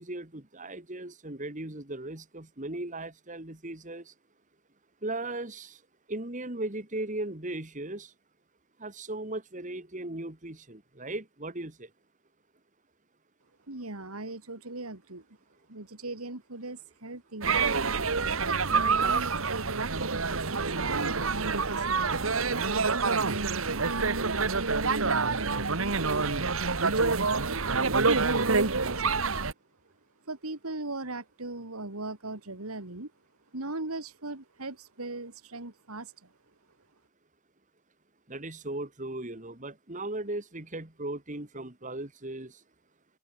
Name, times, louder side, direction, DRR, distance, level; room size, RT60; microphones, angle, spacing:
voice 1, 0.0-4.1 5.0-5.8 6.1-8.1 8.8-11.9 38.3-42.5, right 2 dB, 35° right, 2.2 m, -37 dB
voice 2, 13.7-15.2 15.7-17.6 18.5-22.2 22.7-26.3 26.8-29.5 30.3-33.1 33.5-36.1, right 2 dB, 85° right, 2.9 m, -39 dB
sound 1, 17.4-29.5, right 4 dB, 70° right, 1.7 m, -27 dB
head